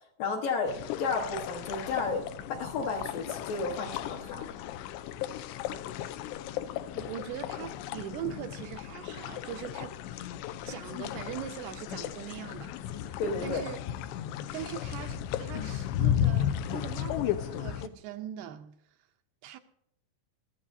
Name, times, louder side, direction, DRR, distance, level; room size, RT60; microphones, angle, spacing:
voice 1, 0.2-2.2 2.5-4.5 13.2-13.6, left 4 dB, 65° left, 2.4 m, -32 dB
sound 1, 0.7-17.9, left 11 dB, 85° left, 2.8 m, -34 dB
voice 2, 7.0-10.0 10.7-13.2 13.4-13.8 14.5-18.7 19.4-19.6, right 11 dB, 80° right, 2.5 m, -41 dB
21.0 x 14.0 x 2.7 m
omnidirectional pair, 4.9 m